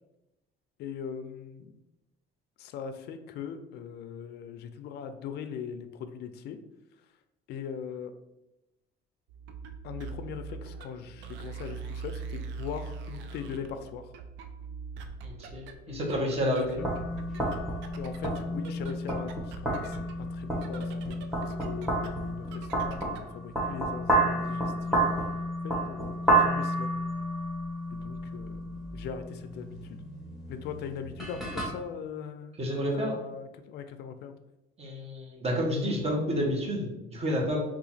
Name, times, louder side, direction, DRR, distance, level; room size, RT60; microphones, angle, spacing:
voice 1, 0.8-1.7 2.6-6.6 7.5-8.1 9.8-14.1 15.9-16.9 18.0-20.0 20.3-21.2 21.4-25.1 25.6-26.9 27.9-30.0 30.5-32.6 32.9-34.4, left 7 dB, 60° left, 9 dB, 0.4 m, -40 dB
sound 1, 9.3-23.4, right 5 dB, 75° right, 0.4 m, -43 dB
voice 2, 15.2-16.8 32.6-33.2 34.8-37.6, equal, 35° right, 0 dB, 1.1 m, -30 dB
sound 2, 16.8-31.7, right 1 dB, ahead, 1.0 m, -30 dB
2.8 x 2.4 x 4.2 m, 0.94 s
cardioid pair, 100°, 19 cm